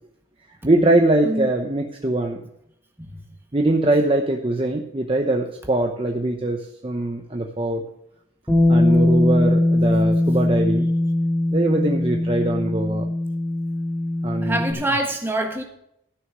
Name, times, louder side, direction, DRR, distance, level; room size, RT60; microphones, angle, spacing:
voice 1, 0.6-2.4 3.5-7.8 8.7-10.9 11.5-13.1 14.2-14.8, right 2 dB, 25° right, 3 dB, 0.8 m, -22 dB
Bass guitar, 8.5-14.7, left 1 dB, 5° left, 2.1 m, -20 dB
voice 2, 14.4-15.6, right 1 dB, 10° right, 3 dB, 1.5 m, -25 dB
14.5 x 6.4 x 6.1 m, 0.77 s
head